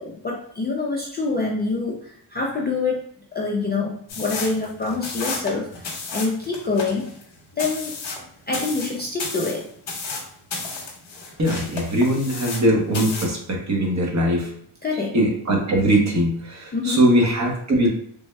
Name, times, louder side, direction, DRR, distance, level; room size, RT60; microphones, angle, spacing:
voice 1, 0.0-3.0 3.3-5.7 6.1-7.1 7.6-7.9 8.5-9.6 14.8-15.2 16.7-17.0, left 3 dB, 20° left, -2 dB, 0.4 m, -26 dB
sound 1, 4.1-12.7 12.9-13.4, left 4 dB, 60° left, 1.0 m, -33 dB
voice 2, 11.4-14.5 14.9-17.9, right 1 dB, 35° right, 0 dB, 0.9 m, -21 dB
3.5 x 2.1 x 3.2 m, 0.66 s
cardioid pair, 120°, 48 cm